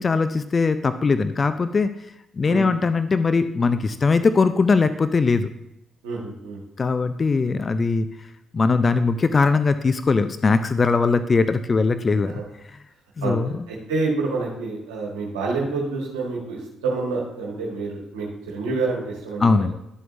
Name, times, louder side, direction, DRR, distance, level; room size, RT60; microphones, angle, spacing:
voice 1, 0.0-1.9 2.4-5.5 6.8-8.1 8.5-12.4 13.2-13.6 19.4-19.7, left 4 dB, 40° left, 11 dB, 0.5 m, -20 dB
voice 2, 6.0-6.6 13.2-13.3 13.7-19.7, right 3 dB, 80° right, -3 dB, 1.5 m, -28 dB
12.0 x 7.5 x 2.6 m, 0.86 s
figure-of-eight pair, 45°, 0 cm